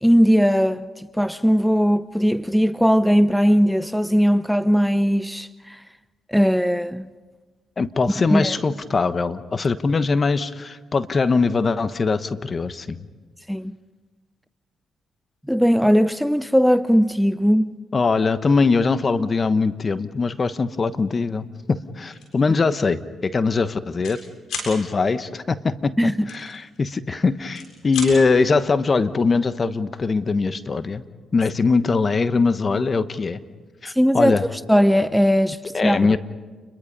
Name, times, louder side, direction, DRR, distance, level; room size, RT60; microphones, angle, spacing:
voice 1, 0.0-5.8 6.3-7.1 8.3-8.6 13.5-13.8 15.5-17.8 26.0-26.3 27.1-27.2 33.9-36.2, equal, ahead, 0.6 m, -19 dB
voice 2, 7.8-13.0 17.9-24.2 24.7-31.0 31.3-33.4 33.8-34.4 35.7-36.2, left 4 dB, 40° left, 1.2 m, -21 dB
sound 1, 22.1-22.4 22.8-23.0 23.3-24.2 24.4-24.7 26.3-27.1 27.4-28.1, left 4 dB, 75° left, 7.3 m, -33 dB
29.5 x 22.5 x 5.4 m
supercardioid pair, 60°, 0 cm